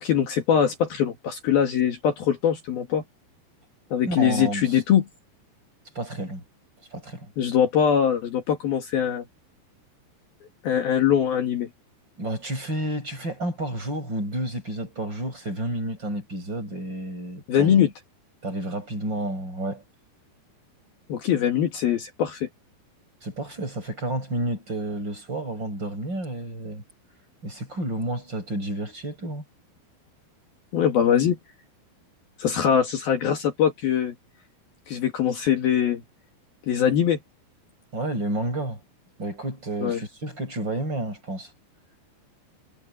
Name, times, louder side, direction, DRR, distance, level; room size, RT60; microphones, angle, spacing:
voice 1, 0.0-3.0 3.9-5.1 7.4-9.2 10.6-11.7 17.5-17.9 21.1-22.5 30.7-31.4 32.4-34.1 34.9-36.0 36.7-37.2 39.8-40.0, left 9 dB, 60° left, 3.6 m, -22 dB
voice 2, 4.0-4.8 5.9-6.4 6.9-7.3 12.2-17.8 18.4-19.8 23.2-26.8 27.4-29.4 37.9-38.8 39.2-41.5, right 1 dB, 25° right, 8.0 m, -30 dB
omnidirectional pair, 5.2 m